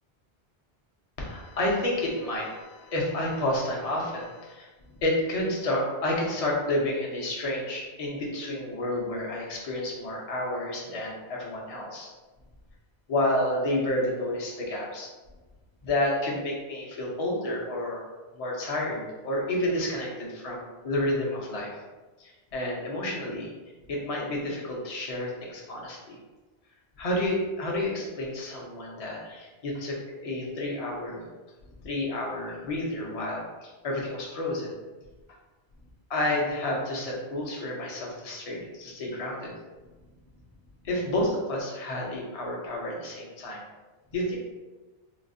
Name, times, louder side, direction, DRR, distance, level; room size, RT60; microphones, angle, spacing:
voice 1, 1.2-4.7 5.0-12.1 13.1-15.1 15.8-18.0 18.4-21.8 22.2-23.5 23.9-26.2 27.0-31.3 31.8-34.7 36.1-39.5 40.8-43.6 44.1-44.4, left 1 dB, 40° left, -2 dB, 0.6 m, -30 dB
3.9 x 2.0 x 2.6 m, 1.2 s
omnidirectional pair, 1.1 m